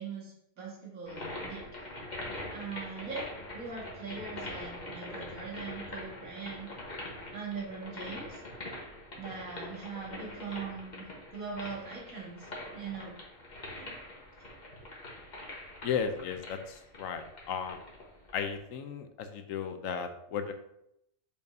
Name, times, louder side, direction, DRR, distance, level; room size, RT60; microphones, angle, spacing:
voice 1, 0.0-1.6 2.5-6.7 7.3-8.4 9.2-11.1 11.3-13.2 13.8-14.0, right 5 dB, 90° right, -4 dB, 2.2 m, -41 dB
sound 1, 1.1-18.6, left 1 dB, 35° left, 1.3 m, -44 dB
voice 2, 15.8-17.8 18.3-20.5, left 7 dB, 80° left, 8 dB, 1.0 m, -35 dB
6.7 x 5.2 x 2.7 m, 0.79 s
omnidirectional pair, 1.4 m